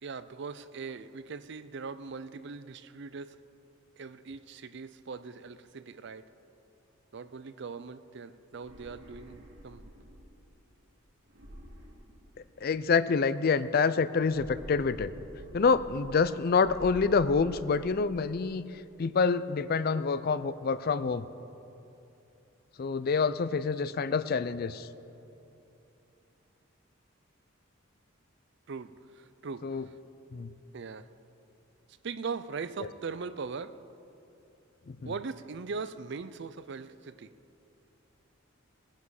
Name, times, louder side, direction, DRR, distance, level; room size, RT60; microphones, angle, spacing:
voice 1, 0.0-3.4 4.0-6.3 7.1-9.9 28.7-29.8 30.7-31.1 32.0-33.7 35.0-37.3, right 5 dB, 55° right, 13 dB, 0.5 m, -40 dB
sound 1, 8.5-10.4 11.3-12.7 14.1-16.3 16.6-18.3, equal, 75° right, 2.5 m, -48 dB
voice 2, 12.6-15.1 15.5-18.6 19.0-21.2 22.8-24.9 29.6-29.8 30.3-30.5 35.0-35.1, left 5 dB, 45° left, 14 dB, 0.4 m, -27 dB
20.0 x 10.5 x 4.9 m, 2.9 s
head